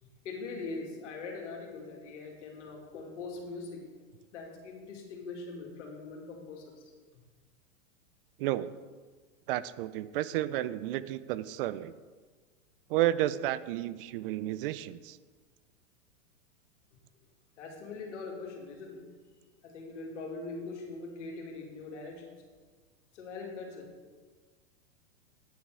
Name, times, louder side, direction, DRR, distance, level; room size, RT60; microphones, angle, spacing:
voice 1, 0.0-3.8 4.3-6.9 17.6-19.0 19.6-22.2 23.1-23.9, left 3 dB, 70° left, 0 dB, 2.5 m, -42 dB
voice 2, 8.4-8.7 9.5-11.9 12.9-15.2, right 14 dB, 50° right, 16 dB, 0.5 m, -31 dB
9.4 x 7.0 x 4.8 m, 1.5 s
hypercardioid pair, 120°, 37 cm